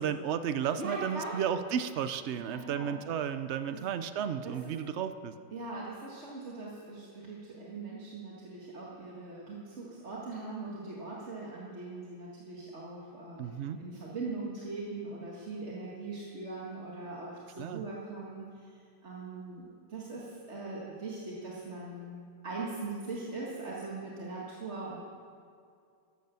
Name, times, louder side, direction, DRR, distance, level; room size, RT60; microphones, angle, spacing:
voice 1, 0.0-5.3 13.4-13.8 17.6-17.8, right 8 dB, 80° right, 11 dB, 0.6 m, -33 dB
voice 2, 0.8-1.5 2.3-3.0 3.7-3.8 4.4-4.6 5.5-18.7 19.0-25.0, right 3 dB, 40° right, -5 dB, 2.0 m, -41 dB
14.0 x 11.5 x 6.9 m, 2.3 s
omnidirectional pair, 1.9 m